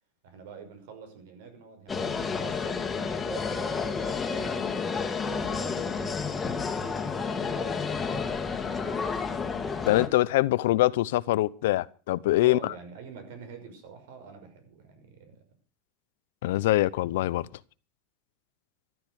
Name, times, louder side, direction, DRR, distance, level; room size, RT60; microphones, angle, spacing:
voice 1, 0.2-4.6 5.2-8.5 12.4-15.4 16.4-16.7, right 6 dB, 80° right, 5.8 m, -47 dB
sound 1, 1.9-10.1, left 5 dB, 15° left, 1.9 m, -30 dB
voice 2, 9.9-12.7 16.4-17.5, left 16 dB, 90° left, 0.7 m, -24 dB
14.0 x 12.5 x 6.4 m
supercardioid pair, 160°, 0 cm